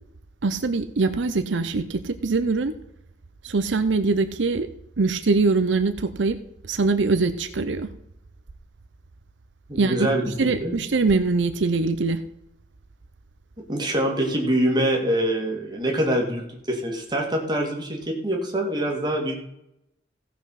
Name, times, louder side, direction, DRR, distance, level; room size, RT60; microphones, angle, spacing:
voice 1, 0.4-2.7 3.4-4.7 5.0-6.4 6.7-7.9 9.8-10.0 10.4-12.2, right 3 dB, 80° right, 10 dB, 0.7 m, -23 dB
voice 2, 9.7-10.3 10.6-10.8 13.7-19.4, right 1 dB, 25° right, 0 dB, 2.3 m, -24 dB
15.5 x 5.9 x 5.8 m, 0.81 s
head